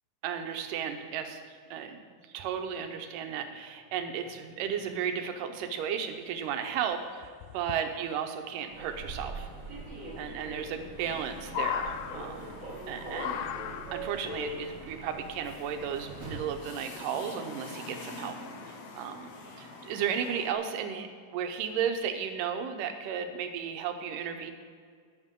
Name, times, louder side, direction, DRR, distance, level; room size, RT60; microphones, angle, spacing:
voice 1, 0.2-9.5 10.2-12.6 12.9-13.5 13.9-18.4 18.6-24.5, right 8 dB, 75° right, 6 dB, 2.4 m, -34 dB
sound 1, 6.2-6.3 6.5-6.6 7.2-7.8 9.3-9.4 10.7-11.2 11.4-12.7 13.1-14.2 15.1-15.2, left 10 dB, 80° left, 2.2 m, -36 dB
Human voice / Subway metro underground, 8.7-16.6, right 1 dB, 40° right, 2.0 m, -42 dB
sound 2, 11.0-20.5, left 3 dB, 60° left, 1.8 m, -47 dB
20.0 x 7.3 x 3.7 m, 2.1 s
omnidirectional pair, 4.0 m